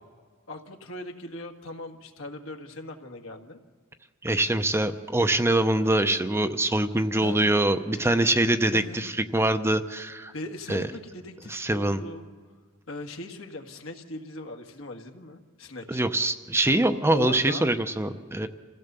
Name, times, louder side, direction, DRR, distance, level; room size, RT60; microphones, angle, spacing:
voice 1, 0.5-3.6 7.2-7.4 8.7-9.0 10.3-12.3 12.9-16.0 17.1-17.7, left 2 dB, 75° left, 4 dB, 1.7 m, -39 dB
voice 2, 4.2-10.3 10.7-10.8 11.5-12.0 15.9-18.5, right 1 dB, 10° right, 8 dB, 0.7 m, -24 dB
26.5 x 16.0 x 6.8 m, 1.5 s
head